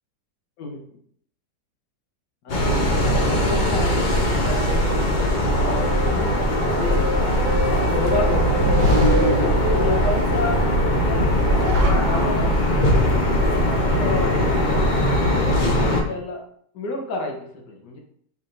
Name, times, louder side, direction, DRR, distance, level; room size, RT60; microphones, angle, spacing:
voice 1, 2.4-8.6 9.4-10.7 11.1-11.3 11.6-12.7 13.5-14.8 15.4-16.5 16.7-18.0, left 2 dB, 75° left, 1 dB, 1.5 m, -30 dB
sound 1, 2.5-16.0, equal, 60° left, 0.5 m, -20 dB
sound 2, 5.5-12.3, left 1 dB, 30° right, 1.2 m, -30 dB
sound 3, 8.2-10.1 11.1-12.7, right 1 dB, 70° right, 1.4 m, -23 dB
5.7 x 3.4 x 2.5 m, 0.64 s
omnidirectional pair, 1.8 m